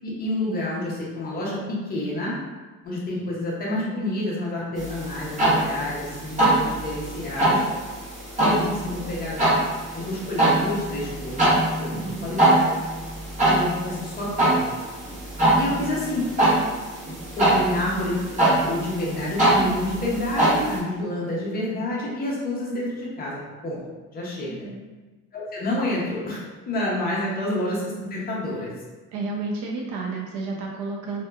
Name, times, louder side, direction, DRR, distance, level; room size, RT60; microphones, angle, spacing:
voice 1, 0.0-2.4 2.8-7.6 8.4-9.4 10.0-12.7 13.5-14.6 15.6-16.2 17.4-18.2 18.4-23.8 24.1-24.5 25.3-28.7, left 1 dB, 30° left, -5 dB, 0.6 m, -29 dB
sound 1, 4.8-20.8, right 1 dB, 25° right, 0.7 m, -23 dB
voice 2, 11.9-12.3 15.5-15.9 24.4-24.9 29.1-31.2, right 3 dB, 65° right, -1 dB, 0.5 m, -32 dB
2.8 x 2.2 x 2.2 m, 1.2 s
cardioid pair, 175°, 33 cm